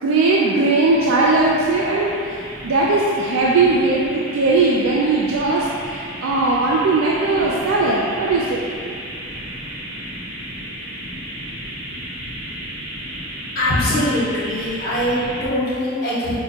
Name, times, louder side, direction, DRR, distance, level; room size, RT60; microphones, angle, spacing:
voice 1, 0.0-2.2 2.6-8.6, right 3 dB, 90° right, -4 dB, 0.4 m, -18 dB
sound 1, 0.8-15.5, equal, 70° right, 0.8 m, -33 dB
voice 2, 13.5-16.4, left 1 dB, 50° left, -9 dB, 1.1 m, -22 dB
5.7 x 2.2 x 2.8 m, 2.3 s
head